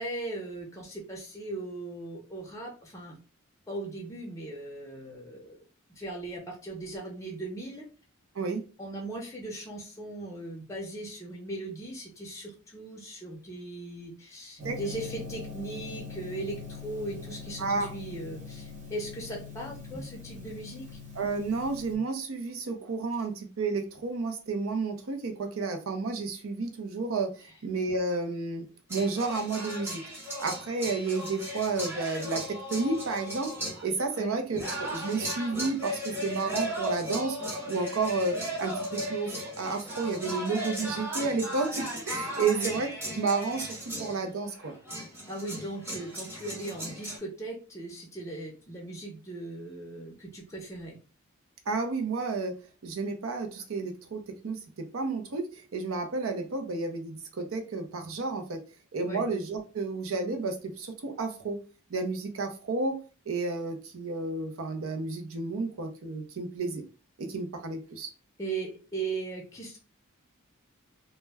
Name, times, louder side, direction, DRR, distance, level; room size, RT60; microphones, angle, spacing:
voice 1, 0.0-3.2 3.7-5.6 6.0-7.8 8.8-20.9 34.2-34.4 42.5-42.7 45.3-51.0 59.1-59.2 68.4-69.8, right 2 dB, 15° left, -1 dB, 0.5 m, -38 dB
Gong, 14.6-21.9, left 4 dB, 35° right, 1.0 m, -42 dB
voice 2, 17.6-17.9 21.1-30.0 30.4-33.5 33.8-37.4 37.7-42.9 43.2-44.7 51.7-58.6 58.9-61.6 61.9-63.0 63.3-66.8 67.2-68.1, right 3 dB, 70° right, 5 dB, 0.6 m, -31 dB
sound 1, 28.9-47.2, equal, 10° right, 0.8 m, -36 dB
2.1 x 2.1 x 3.3 m, 0.35 s
head